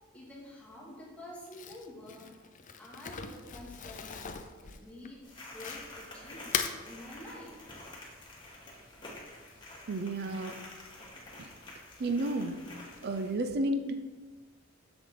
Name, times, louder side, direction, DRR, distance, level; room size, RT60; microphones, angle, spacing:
voice 1, 0.1-2.3 2.8-7.6, left 1 dB, 5° left, -6 dB, 2.1 m, -48 dB
Crumpling crinkling, 1.4-6.0 6.4-6.8, left 7 dB, 40° left, 0.5 m, -38 dB
sound 1, 5.2-13.3, left 2 dB, 25° left, 1.7 m, -49 dB
voice 2, 9.9-10.6 11.4-11.5 12.0-12.6 13.0-13.9, right 1 dB, 50° right, 8 dB, 0.5 m, -32 dB
7.1 x 7.1 x 3.8 m, 1.3 s
head